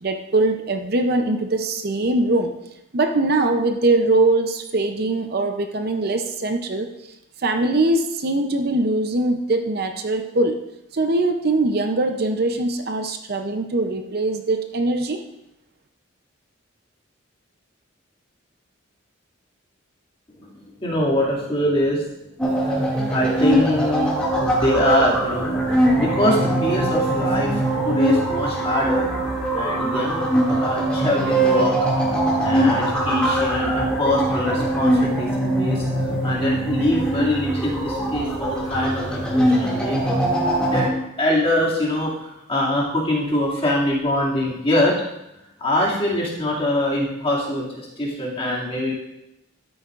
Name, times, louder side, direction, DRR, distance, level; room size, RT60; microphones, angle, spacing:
voice 1, 0.0-2.5 2.9-6.9 7.4-10.6 10.9-15.2, right 2 dB, 50° right, 5 dB, 0.6 m, -22 dB
voice 2, 20.4-24.1 24.4-29.1 29.5-31.8 32.4-35.9 36.2-40.2 40.6-40.9 41.2-45.0 45.6-48.9, left 1 dB, 30° left, -6 dB, 2.4 m, -24 dB
sound 1, 22.4-40.9, right 1 dB, 5° left, 2.3 m, -22 dB
12.5 x 9.2 x 2.5 m, 0.87 s
head